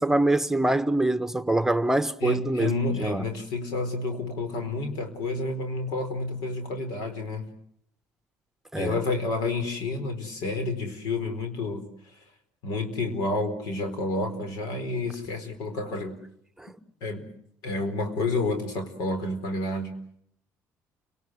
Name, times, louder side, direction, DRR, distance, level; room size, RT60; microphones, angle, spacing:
voice 1, 0.0-3.2 8.7-9.0 16.6-16.7, right 1 dB, 5° right, 1.1 m, -24 dB
voice 2, 2.2-7.6 8.8-11.9 12.6-16.2 17.0-17.3 17.6-20.0, left 2 dB, 85° left, 4.4 m, -30 dB
30.0 x 19.0 x 8.0 m
supercardioid pair, 80°, 7 cm